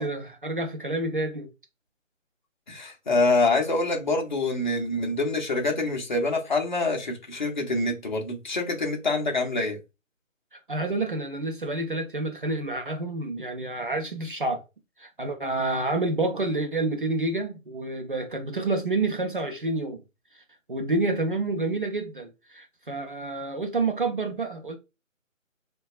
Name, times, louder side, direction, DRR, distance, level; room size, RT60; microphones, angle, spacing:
voice 1, 0.0-1.5 10.7-14.6 15.0-20.0 20.7-24.8, right 2 dB, 40° right, 0.5 m, -28 dB
voice 2, 2.7-9.8, left 2 dB, 35° left, 0.7 m, -26 dB
3.8 x 2.2 x 2.4 m
figure-of-eight pair, 155°, 40 cm